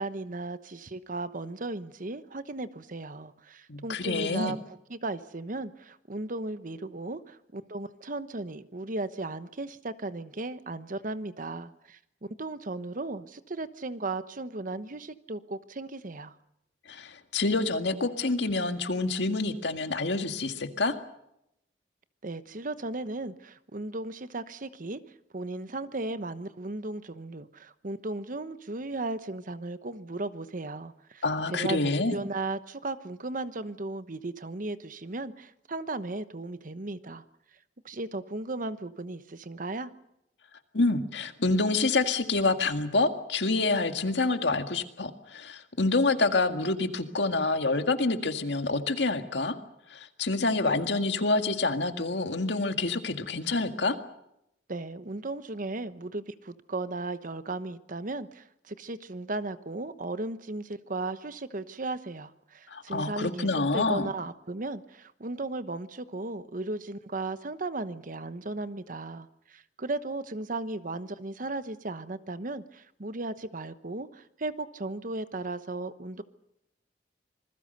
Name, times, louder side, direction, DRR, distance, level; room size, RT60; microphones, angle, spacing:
voice 1, 0.0-4.6 4.9-12.0 12.4-16.3 22.2-25.0 25.3-31.2 31.5-37.2 37.8-39.9 54.7-76.2, right 2 dB, 50° right, 13 dB, 1.0 m, -36 dB
voice 2, 3.7-4.5 16.9-20.9 31.2-32.2 40.7-49.6 49.9-54.0 62.7-64.1, left 3 dB, 75° left, 7 dB, 1.9 m, -27 dB
27.0 x 21.0 x 6.7 m, 0.81 s
head